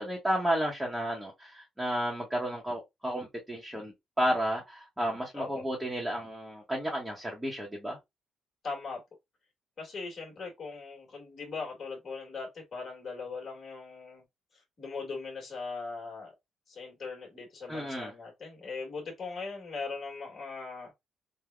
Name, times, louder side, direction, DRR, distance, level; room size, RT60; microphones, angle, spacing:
voice 1, 0.0-8.0 17.7-18.1, equal, 10° right, 0.9 m, -32 dB
voice 2, 8.6-9.0 9.8-14.2 14.8-16.3 16.7-20.9, left 4 dB, 40° left, 1.5 m, -39 dB
3.3 x 2.1 x 2.2 m
cardioid pair, 90°, 0 cm